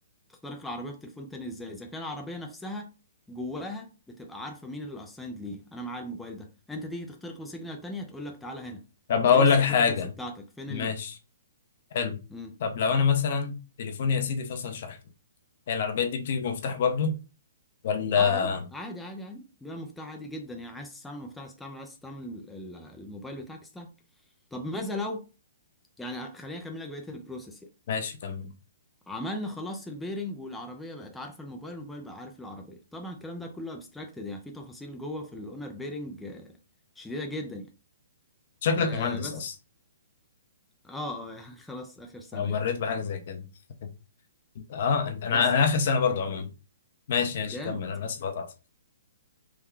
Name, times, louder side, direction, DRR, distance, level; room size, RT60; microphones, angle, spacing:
voice 1, 0.3-2.9 3.3-8.9 9.3-11.0 12.3-12.5 18.2-23.9 24.5-25.3 26.0-27.6 29.1-36.6 37.0-37.7 38.7-39.5 40.8-42.6 45.3-45.5 47.4-47.8, left 1 dB, 5° left, 0.4 m, -38 dB
voice 2, 9.1-10.1 10.7-11.1 11.9-12.2 12.6-15.0 15.7-17.1 17.8-18.6 27.9-28.5 38.6-39.5 42.3-43.5 44.7-46.5 47.1-48.5, left 6 dB, 55° left, 0.7 m, -26 dB
3.6 x 2.2 x 3.2 m
hypercardioid pair, 145°, 0 cm